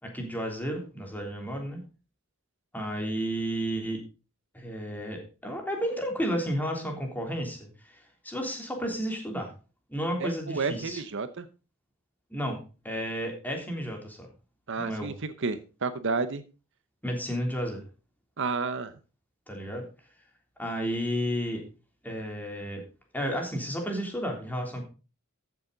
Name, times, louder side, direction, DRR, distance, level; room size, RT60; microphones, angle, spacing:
voice 1, 0.0-1.8 2.7-4.0 4.5-9.5 9.9-11.0 12.3-14.3 14.8-15.1 17.0-17.8 19.5-19.9 20.6-21.6 22.0-22.8 23.1-24.8, equal, 10° left, 2 dB, 3.2 m, -32 dB
voice 2, 10.2-11.5 14.7-16.4 18.4-18.9, right 4 dB, 60° right, 12 dB, 0.9 m, -31 dB
14.5 x 7.2 x 4.0 m, 0.33 s
head